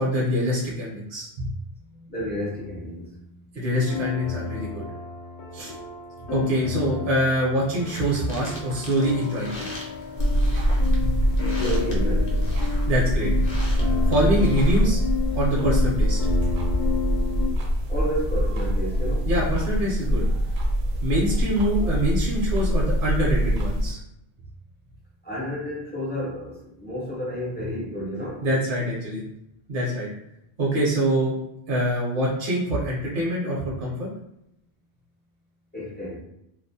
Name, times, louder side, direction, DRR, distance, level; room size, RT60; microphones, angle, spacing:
voice 1, 0.0-1.5 3.5-4.8 5.5-5.7 6.3-9.7 11.0-11.1 12.9-13.4 14.1-15.0 15.3-16.2 19.2-20.3 21.0-24.0 28.4-29.2 29.7-30.1 30.6-31.4 31.7-34.1, equal, 60° right, -4 dB, 0.7 m, -24 dB
voice 2, 1.9-3.6 11.6-12.5 17.9-19.3 25.2-28.5 35.7-36.2, equal, 15° left, -6 dB, 0.3 m, -31 dB
sound 1, 3.7-17.5, left 7 dB, 85° left, 0.9 m, -32 dB
sound 2, 7.8-14.8, left 1 dB, 50° left, 0.7 m, -41 dB
sound 3, 10.2-23.9, equal, 90° right, 0.9 m, -23 dB
2.3 x 2.0 x 2.6 m, 0.81 s
omnidirectional pair, 1.1 m